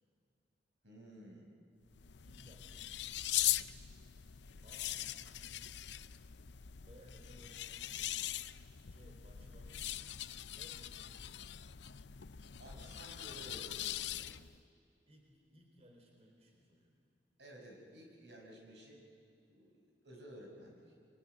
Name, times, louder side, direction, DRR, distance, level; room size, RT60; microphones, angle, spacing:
voice 1, 0.8-1.5 12.6-14.3 17.4-19.0 19.5-20.9, right 1 dB, 80° right, 1 dB, 5.6 m, -54 dB
sound 1, 1.9-14.6, left 13 dB, 80° left, 0.6 m, -41 dB
voice 2, 2.2-3.1 4.6-5.6 6.8-8.0 8.9-9.9 10.5-11.3 15.1-17.0, equal, 35° right, 1 dB, 4.1 m, -62 dB
29.0 x 23.5 x 7.8 m, 2.5 s
head